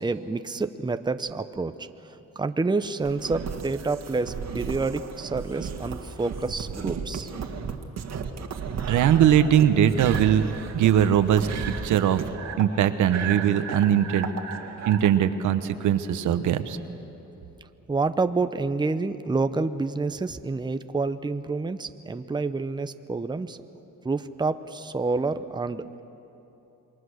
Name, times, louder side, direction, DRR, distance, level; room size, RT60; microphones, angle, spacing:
voice 1, 0.0-1.9 2.3-7.3 17.9-23.6 24.0-26.0, right 3 dB, 15° right, 10 dB, 0.8 m, -28 dB
sound 1, 3.0-15.1, right 6 dB, 60° right, 1.8 m, -34 dB
voice 2, 8.9-10.5 10.7-11.5 11.8-12.2 12.6-14.3 14.9-16.8, right 10 dB, 80° right, 10 dB, 1.2 m, -20 dB
27.5 x 22.0 x 6.5 m, 3.0 s
cardioid pair, 90°, 30 cm